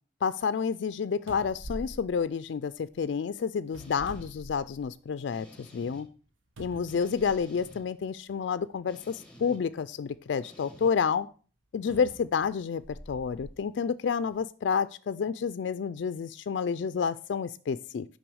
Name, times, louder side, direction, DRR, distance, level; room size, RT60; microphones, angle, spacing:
voice 1, 0.2-6.1 6.6-11.3 11.7-18.1, left 6 dB, 65° left, 13 dB, 0.3 m, -30 dB
sound 1, 0.9-1.0 1.3-3.0 3.6-5.1 5.5-5.6 6.6-7.7 8.6-8.7 11.9-13.5 14.2-14.4, equal, 85° right, 1.2 m, -45 dB
sound 2, 3.8-4.3 5.3-6.0 6.9-7.8 8.9-9.6 10.4-10.9, left 1 dB, 5° left, 2.0 m, -51 dB
6.1 x 5.5 x 6.2 m, 0.39 s
head